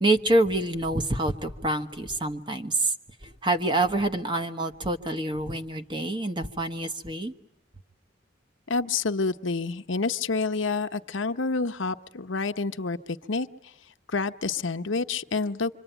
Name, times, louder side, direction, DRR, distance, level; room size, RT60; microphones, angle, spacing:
voice 1, 0.0-2.9 3.2-7.3, right 2 dB, 25° right, 7 dB, 1.2 m, -26 dB
voice 2, 8.7-13.5 14.1-15.7, left 4 dB, 90° left, 7 dB, 1.0 m, -28 dB
26.0 x 25.0 x 9.1 m, 0.82 s
head